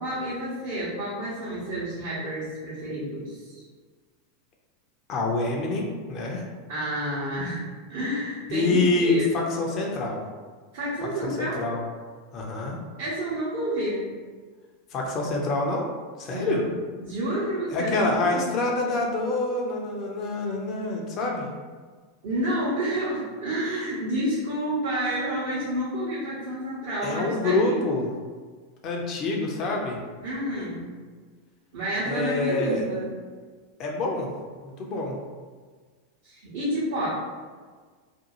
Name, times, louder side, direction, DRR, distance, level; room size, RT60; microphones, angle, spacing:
voice 1, 0.0-3.6 6.7-7.6 7.9-9.3 10.7-11.6 13.0-14.1 16.3-16.7 17.0-18.5 22.2-27.8 30.2-30.9 31.7-33.1 36.2-37.1, right 1 dB, 60° right, -9 dB, 0.8 m, -29 dB
voice 2, 5.1-6.4 8.5-10.2 11.2-11.8 12.3-12.8 14.9-15.9 16.2-16.6 17.7-21.5 27.0-28.1 28.8-30.0 32.1-32.8 33.8-34.3 34.6-35.2, left 2 dB, 40° left, -1 dB, 0.5 m, -26 dB
2.6 x 2.2 x 2.9 m, 1.5 s
figure-of-eight pair, 90°, 0 cm